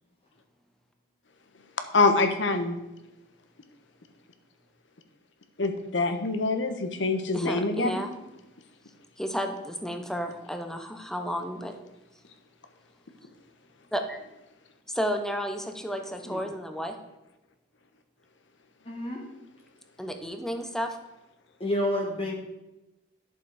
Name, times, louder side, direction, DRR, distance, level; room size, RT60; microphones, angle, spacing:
voice 1, 1.9-2.8 5.6-8.0, left 3 dB, 70° left, 7 dB, 1.2 m, -25 dB
voice 2, 7.3-8.1 9.2-11.7 13.9-14.2 15.0-17.0 20.0-21.0, equal, 5° left, 6 dB, 0.8 m, -32 dB
voice 3, 18.9-19.2 21.6-22.3, left 1 dB, 30° left, -1 dB, 1.4 m, -29 dB
11.0 x 6.9 x 4.9 m, 0.98 s
head